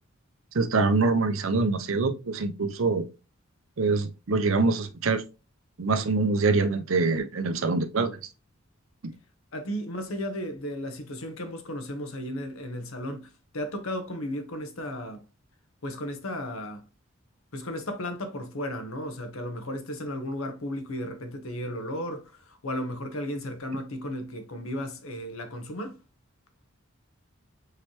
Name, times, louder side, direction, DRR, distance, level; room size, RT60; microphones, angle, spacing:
voice 1, 0.5-3.0 3.8-5.2 5.8-8.2, right 3 dB, 70° right, 0.7 m, -24 dB
voice 2, 9.5-15.2 15.8-16.8 17.5-26.0, left 1 dB, 80° left, 1.0 m, -34 dB
4.9 x 3.2 x 3.0 m
head